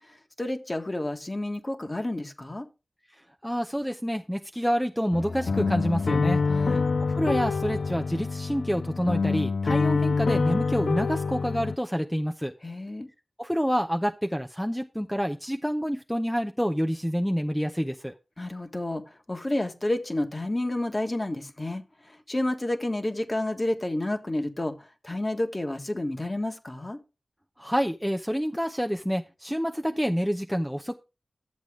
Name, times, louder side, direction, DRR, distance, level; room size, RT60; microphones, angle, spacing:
voice 1, 0.4-2.7 6.5-6.8 12.6-13.1 18.4-19.0 19.3-27.0, left 1 dB, 30° left, 1.5 m, -30 dB
voice 2, 3.1-6.4 7.1-12.5 13.4-18.1 27.6-31.0, equal, ahead, 0.7 m, -28 dB
sound 1, 5.1-11.8, left 4 dB, 70° left, 0.4 m, -26 dB
12.0 x 7.4 x 3.6 m
wide cardioid pair, 60°, 0 cm